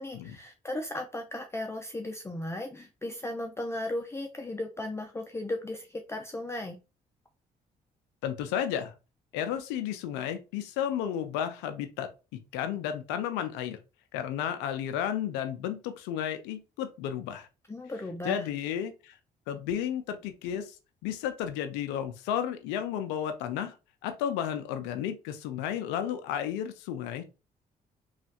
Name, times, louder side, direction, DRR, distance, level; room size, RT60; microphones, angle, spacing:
voice 1, 0.0-6.8 17.7-18.5, left 1 dB, 15° left, 3 dB, 0.5 m, -36 dB
voice 2, 8.2-8.9 9.3-13.8 14.1-17.5 18.2-19.1 19.5-20.8 21.0-23.8 24.0-27.4, left 9 dB, 90° left, 8 dB, 0.4 m, -33 dB
3.1 x 2.4 x 2.8 m, 0.29 s
supercardioid pair, 60°, 17 cm